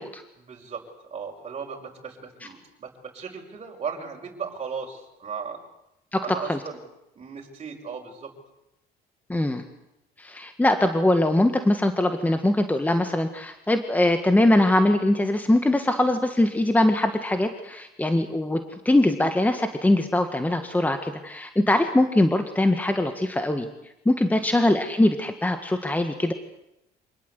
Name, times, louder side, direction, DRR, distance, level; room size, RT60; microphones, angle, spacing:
voice 1, 0.4-5.6 6.2-6.8 7.2-8.3 24.4-24.5, right 6 dB, 35° right, -2 dB, 5.3 m, -36 dB
voice 2, 6.1-6.6 9.3-9.6 10.2-18.6 18.8-23.7 24.0-26.3, left 1 dB, 10° left, 7 dB, 1.7 m, -22 dB
26.0 x 19.5 x 8.3 m, 0.86 s
cardioid pair, 110°, 17 cm